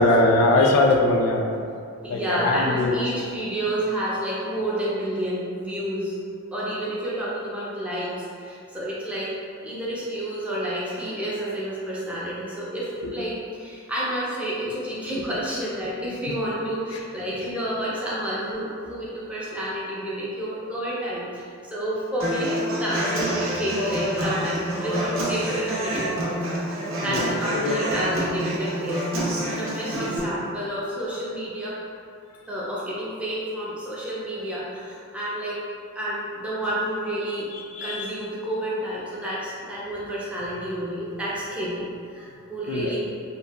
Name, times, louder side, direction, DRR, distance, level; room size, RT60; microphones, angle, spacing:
voice 1, 0.0-1.5 2.1-3.0 27.0-27.3 27.5-27.8 37.7-38.1 42.7-42.9, left 2 dB, 85° left, 3 dB, 0.3 m, -21 dB
voice 2, 2.0-6.2 6.5-9.3 9.6-26.4 26.7-31.7 32.5-35.6 35.9-37.5 37.8-43.0, right 1 dB, 5° right, -7 dB, 0.4 m, -30 dB
Human voice / Acoustic guitar, 22.2-30.2, right 1 dB, 65° right, 0.6 m, -27 dB
2.6 x 2.5 x 2.2 m, 2.4 s
head